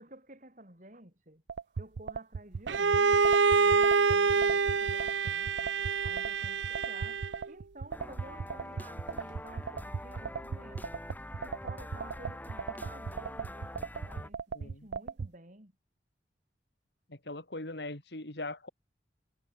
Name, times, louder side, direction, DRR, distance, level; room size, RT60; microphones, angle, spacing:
voice 1, 0.0-1.4 1.7-5.7 6.0-7.2 7.5-10.9 11.4-15.7, right 1 dB, 45° right, 5.1 m, -52 dB
sound 1, 1.5-15.3, right 5 dB, 75° right, 0.4 m, -37 dB
Bowed string instrument, 2.7-7.5, right 5 dB, 90° right, 0.8 m, -26 dB
sound 2, 7.9-14.3, left 1 dB, 10° left, 5.8 m, -45 dB
voice 2, 14.5-14.9 17.1-18.7, left 2 dB, 70° left, 3.2 m, -40 dB
head